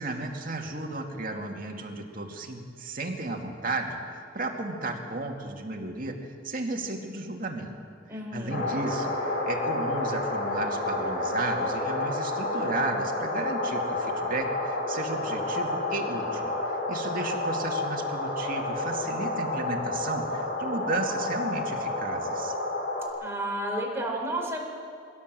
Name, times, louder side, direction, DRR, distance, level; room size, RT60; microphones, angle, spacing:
voice 1, 0.0-7.7 8.3-16.5 16.9-22.6, right 2 dB, 50° right, 2 dB, 2.4 m, -34 dB
voice 2, 8.1-8.6 23.2-24.6, right 1 dB, 15° right, -1 dB, 4.2 m, -31 dB
sound 1, 8.5-23.1, left 2 dB, 70° left, 6.7 m, -30 dB
21.5 x 17.0 x 7.7 m, 2.3 s
head